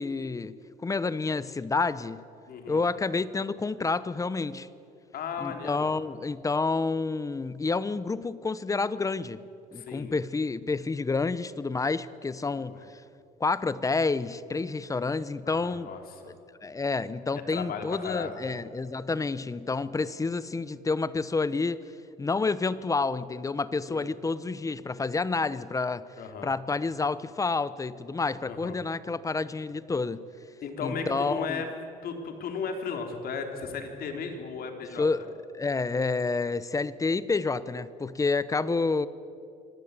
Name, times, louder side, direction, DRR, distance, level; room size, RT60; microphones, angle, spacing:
voice 1, 0.0-2.2 2.7-4.7 5.4-9.5 9.7-13.0 13.4-15.9 16.6-21.8 22.2-26.1 26.4-30.3 30.8-31.6 35.0-35.2 35.5-39.1, left 4 dB, 20° left, 0.8 m, -29 dB
voice 2, 2.5-2.8 5.1-5.9 9.7-10.2 12.5-12.8 15.5-16.3 17.5-18.5 23.9-24.1 26.2-26.5 28.5-28.8 30.6-31.7 32.0-35.1, left 5 dB, 60° left, 3.5 m, -35 dB
25.0 x 18.0 x 8.3 m
cardioid pair, 110°, 17 cm